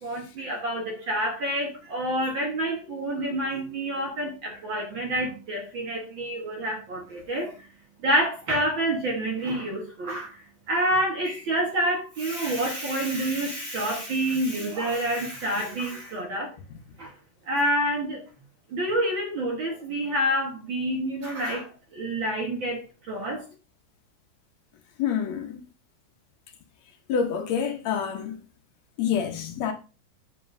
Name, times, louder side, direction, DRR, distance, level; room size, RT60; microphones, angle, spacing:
voice 1, 0.0-7.7 8.0-10.4 10.7-16.5 17.0-17.1 17.5-18.2 18.7-23.4, right 1 dB, 50° right, 1.7 m, -28 dB
voice 2, 25.0-25.6 27.1-28.4 29.0-29.7, left 7 dB, 70° left, 2.1 m, -27 dB
7.8 x 7.5 x 2.6 m
omnidirectional pair, 3.3 m